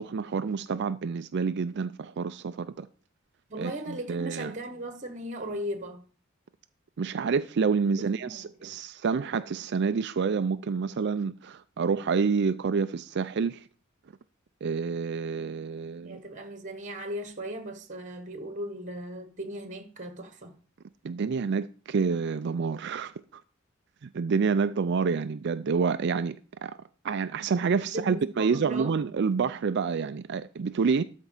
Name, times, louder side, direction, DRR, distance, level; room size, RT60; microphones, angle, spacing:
voice 1, 0.0-2.9 3.6-4.5 7.0-13.6 14.6-16.2 21.0-23.4 24.0-26.7 27.0-31.0, right 5 dB, 55° right, 0.4 m, -28 dB
voice 2, 3.5-6.1 8.0-8.7 16.0-20.6 27.8-29.0, right 1 dB, 40° right, 1.3 m, -37 dB
13.0 x 4.5 x 5.5 m
head